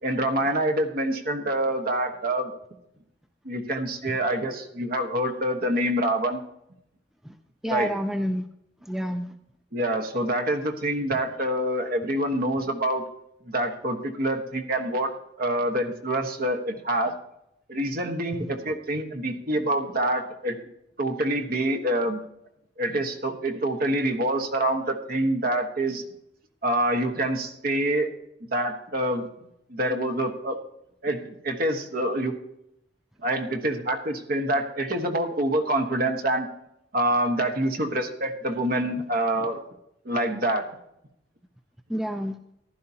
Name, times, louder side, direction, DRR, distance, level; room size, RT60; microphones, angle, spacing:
voice 1, 0.0-2.5 3.4-6.4 7.7-7.9 9.7-13.0 13.5-15.1 15.4-17.1 17.7-20.6 21.0-22.2 22.8-26.0 26.6-28.1 28.5-29.3 29.7-30.6 31.0-32.3 33.2-36.5 36.9-39.6 40.0-40.7, right 1 dB, 50° right, 5 dB, 1.3 m, -26 dB
voice 2, 7.6-8.4 8.8-9.3 18.4-18.5 41.9-42.4, equal, ahead, 8 dB, 0.4 m, -29 dB
15.0 x 11.5 x 2.8 m, 0.80 s
head